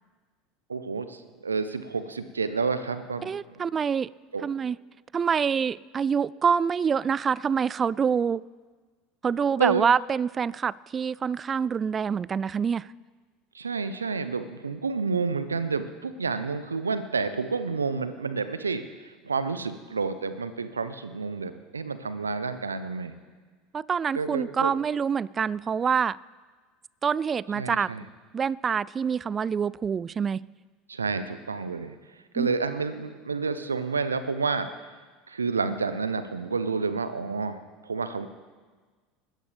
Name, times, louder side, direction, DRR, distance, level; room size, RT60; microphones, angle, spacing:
voice 1, 0.7-3.3 4.3-4.4 9.6-9.9 13.5-23.1 24.2-24.7 27.5-28.1 30.9-31.9 32.3-34.7 35.3-38.3, right 4 dB, 90° right, 12 dB, 0.7 m, -29 dB
voice 2, 3.2-4.1 4.4-4.8 5.1-8.4 9.2-12.9 23.7-26.2 27.0-27.9 28.3-30.4 32.4-32.5, right 6 dB, 30° right, 23 dB, 0.3 m, -26 dB
20.5 x 14.0 x 3.4 m, 1.4 s
hypercardioid pair, 75°, 0 cm